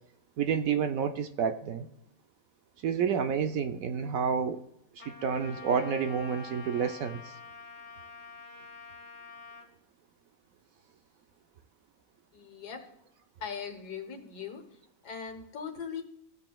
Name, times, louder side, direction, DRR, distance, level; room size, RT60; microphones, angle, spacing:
voice 1, 0.4-1.9 2.8-4.6 5.1-7.2, right 7 dB, 70° right, 8 dB, 0.9 m, -29 dB
Trumpet, 5.0-9.7, left 5 dB, 30° left, 1.4 m, -47 dB
sound 1, 5.2-6.9, right 7 dB, 45° right, 4.3 m, -51 dB
voice 2, 12.3-12.8 13.4-14.6 15.0-16.0, left 6 dB, 80° left, 5 dB, 1.8 m, -39 dB
16.5 x 7.7 x 2.3 m, 0.77 s
omnidirectional pair, 1.7 m